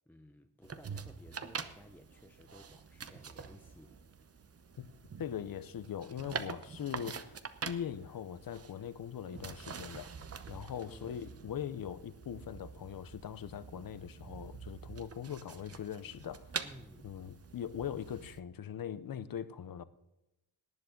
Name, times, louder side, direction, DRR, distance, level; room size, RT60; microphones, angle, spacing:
voice 1, 0.1-4.0 10.9-11.3 16.6-17.1, left 1 dB, 5° left, 0.6 m, -56 dB
sound 1, 0.6-18.4, right 6 dB, 35° right, 0.8 m, -46 dB
voice 2, 5.2-7.4 7.6-10.1 10.5-16.5 17.0-19.8, left 9 dB, 55° left, 0.8 m, -41 dB
18.5 x 10.5 x 3.8 m
wide cardioid pair, 145°, 41 cm